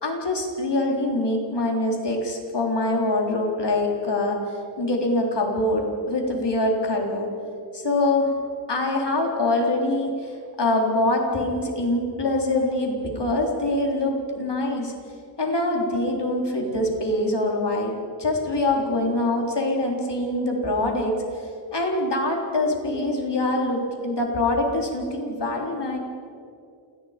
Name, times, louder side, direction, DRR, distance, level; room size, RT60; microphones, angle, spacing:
voice 1, 0.0-4.4 4.8-7.3 7.7-8.3 8.7-14.9 15.4-21.1 21.7-26.0, left 2 dB, 65° left, 0 dB, 3.8 m, -24 dB
28.0 x 18.0 x 5.2 m, 2.4 s
wide cardioid pair, 65°, 44 cm